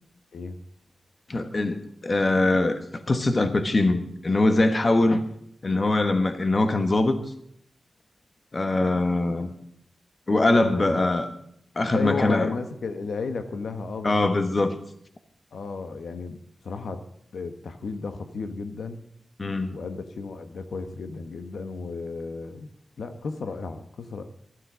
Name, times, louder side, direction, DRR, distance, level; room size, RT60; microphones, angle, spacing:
voice 1, 1.3-5.2 5.6-7.2 8.5-9.5 10.3-11.3 11.7-12.5 14.0-14.7 19.4-19.8, left 2 dB, 30° left, 1.2 m, -22 dB
voice 2, 11.8-14.3 15.5-16.4 16.6-17.0 17.3-19.1 19.7-22.7 23.0-24.2, left 4 dB, 75° left, 1.3 m, -33 dB
13.5 x 12.0 x 6.3 m
wide cardioid pair, 150°, 0 cm